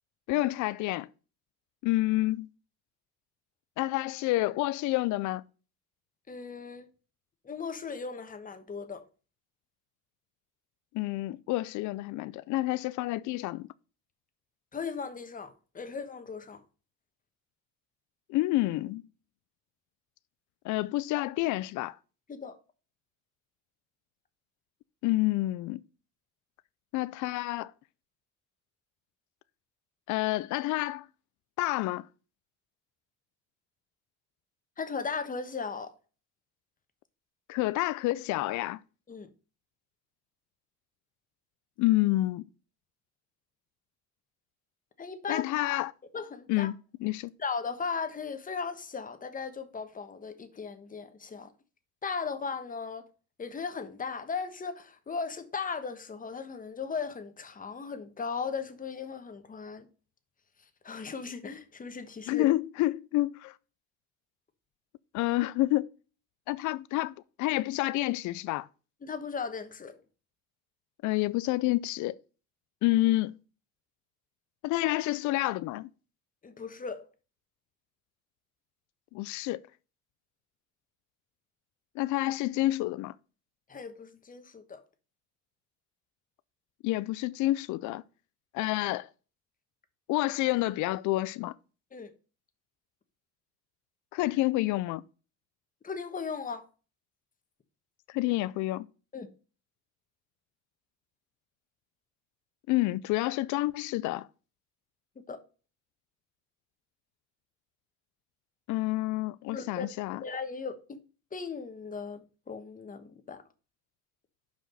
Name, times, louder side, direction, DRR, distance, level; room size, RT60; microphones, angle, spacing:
voice 1, 0.3-1.1 1.8-2.5 3.8-5.4 10.9-13.7 18.3-19.0 20.6-22.0 25.0-25.8 26.9-27.7 30.1-31.1 31.6-32.1 37.5-38.8 41.8-42.5 45.3-45.9 46.5-47.3 62.3-63.5 65.1-65.9 66.5-68.7 71.0-72.2 72.8-73.4 74.6-75.9 79.1-79.6 82.0-83.2 86.8-88.0 88.5-89.1 90.1-91.5 94.1-95.0 98.1-98.9 102.7-104.3 108.7-110.2, left 18 dB, 80° left, 0.5 m, -28 dB
voice 2, 6.3-6.9 7.4-9.0 14.7-16.6 22.3-22.6 34.8-35.9 39.1-39.3 45.0-45.4 46.1-46.7 47.4-51.5 52.0-53.1 53.4-59.9 60.8-62.4 69.0-70.0 76.4-77.1 83.7-84.8 91.9-92.1 95.8-96.7 99.1-99.3 105.3-105.4 109.5-109.9 110.2-111.0 111.3-113.4, left 5 dB, 30° left, 1.2 m, -37 dB
5.9 x 4.9 x 6.7 m
cardioid pair, 115°, 29 cm